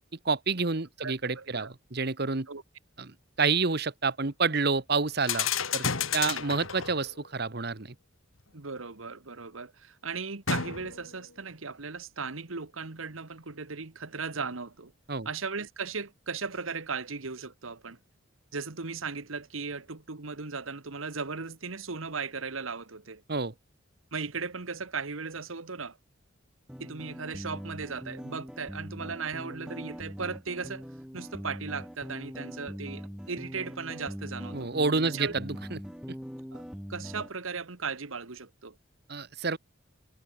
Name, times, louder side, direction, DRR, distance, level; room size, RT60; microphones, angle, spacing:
voice 1, 0.2-2.5 3.0-5.8 6.1-7.9 15.1-15.3 23.3-23.5 34.5-35.8 39.1-39.6, right 4 dB, 50° right, 1.3 m, -29 dB
voice 2, 1.0-1.7 2.5-2.6 6.3-6.4 8.5-14.9 15.2-18.0 18.5-23.2 24.1-26.0 26.8-30.9 31.1-34.7 35.0-35.3 36.5-36.6 36.9-38.7, right 5 dB, 85° right, 1.5 m, -37 dB
sound 1, 5.2-7.1 10.5-11.2, left 7 dB, 90° left, 3.1 m, -31 dB
sound 2, 26.7-37.3, equal, 5° right, 5.3 m, -42 dB
head